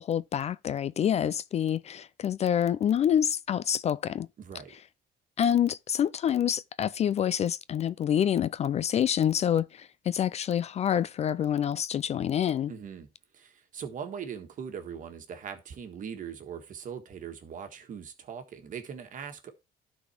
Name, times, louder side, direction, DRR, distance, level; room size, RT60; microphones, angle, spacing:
voice 1, 0.0-4.3 5.4-12.7, left 9 dB, 40° left, 0.4 m, -27 dB
voice 2, 4.4-4.7 12.7-13.1 13.3-19.5, right 7 dB, 50° right, 1.6 m, -40 dB
12.0 x 4.2 x 4.4 m
cardioid pair, 110°, 17 cm